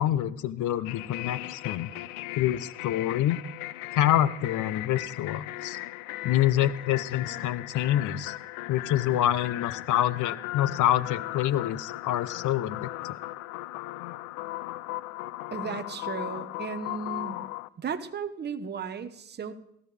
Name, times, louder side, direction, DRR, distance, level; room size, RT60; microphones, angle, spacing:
voice 1, 0.0-1.9 2.3-3.4 3.9-5.8 6.2-8.3 8.7-13.2, left 12 dB, 45° left, 16 dB, 0.8 m, -26 dB
sound 1, 0.8-17.7, left 17 dB, 80° left, 0.6 m, -37 dB
voice 2, 15.5-17.5 17.8-19.5, right 6 dB, 25° right, 9 dB, 1.1 m, -35 dB
18.5 x 15.5 x 3.4 m, 0.76 s
supercardioid pair, 120°, 43 cm